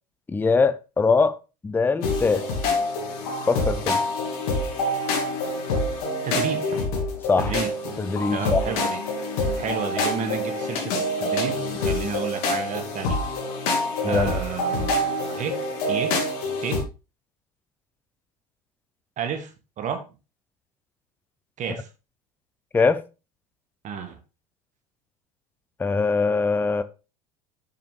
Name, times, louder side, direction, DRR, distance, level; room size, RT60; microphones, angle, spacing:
voice 1, 0.3-1.4 1.6-2.4 3.5-4.0 7.3-7.5 8.0-8.7 14.0-14.3 22.7-23.0 25.8-26.8, left 4 dB, 10° left, 0.5 m, -22 dB
sound 1, 2.0-16.8, left 2 dB, 60° left, 2.4 m, -26 dB
voice 2, 6.2-6.8 7.4-8.0 8.3-9.0 9.6-13.2 14.0-15.6 15.9-16.1 16.6-16.8 19.2-19.5 19.8-20.0 21.6-21.9 23.8-24.2, right 7 dB, 35° right, 1.8 m, -31 dB
6.8 x 6.7 x 3.8 m
figure-of-eight pair, 75°, 21 cm